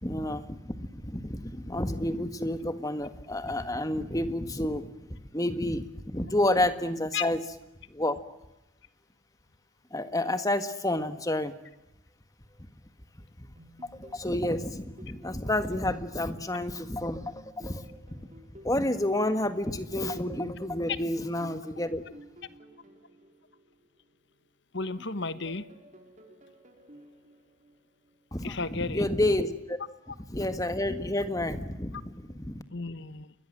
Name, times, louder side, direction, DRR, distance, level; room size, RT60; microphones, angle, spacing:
voice 1, 0.0-7.4 7.9-8.2 9.9-11.6 14.0-17.8 18.1-18.2 18.6-22.0 28.3-29.8 30.3-32.6, left 1 dB, 15° left, 10 dB, 1.6 m, -30 dB
sound 1, 13.6-16.9 17.4-20.6 21.2-24.5 25.0-28.2, right 1 dB, 35° right, 4.6 m, -54 dB
voice 2, 24.7-25.7 28.4-29.1 32.7-33.3, left 4 dB, 55° left, 13 dB, 1.3 m, -33 dB
29.0 x 22.0 x 7.5 m, 0.93 s
head